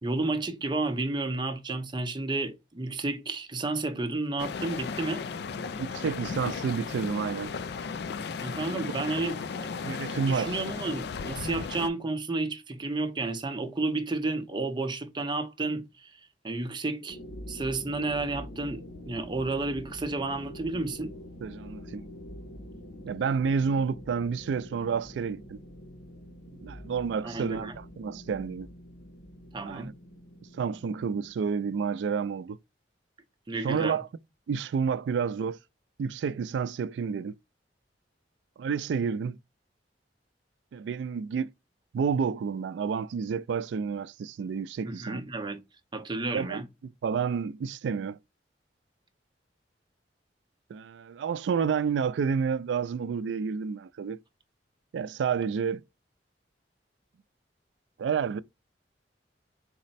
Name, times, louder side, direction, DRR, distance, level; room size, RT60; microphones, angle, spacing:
voice 1, 0.0-5.3 8.4-9.4 10.2-17.2 17.5-21.1 27.2-27.8 29.5-29.9 33.5-34.0 44.8-45.6 45.9-46.7, right 3 dB, 25° right, 0.6 m, -31 dB
sound 1, 4.4-11.9, left 5 dB, 65° left, 0.4 m, -35 dB
voice 2, 5.8-7.5 9.8-10.5 20.7-20.8 21.4-22.0 23.0-25.6 26.6-28.7 29.6-29.9 30.5-32.6 33.6-34.1 34.5-35.6 36.0-37.3 38.6-39.4 40.7-41.5 41.9-45.2 46.3-46.6 47.0-48.2 50.7-54.2 54.9-55.8 58.0-58.4, right 6 dB, 75° right, 0.3 m, -30 dB
sound 2, 17.1-31.3, equal, 80° left, 0.9 m, -45 dB
4.2 x 2.1 x 4.0 m
head